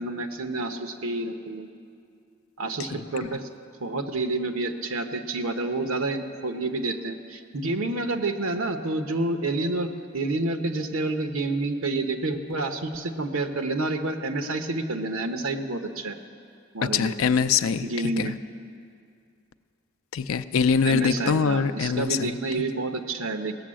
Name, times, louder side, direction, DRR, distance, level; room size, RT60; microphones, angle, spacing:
voice 1, 0.0-1.7 2.6-3.5 3.8-16.2 16.7-17.1 17.8-18.4 20.8-23.6, right 2 dB, 85° right, 7 dB, 0.9 m, -29 dB
voice 2, 16.8-18.4 20.1-22.4, left 6 dB, 85° left, 12 dB, 0.4 m, -24 dB
17.5 x 7.0 x 7.5 m, 2.3 s
head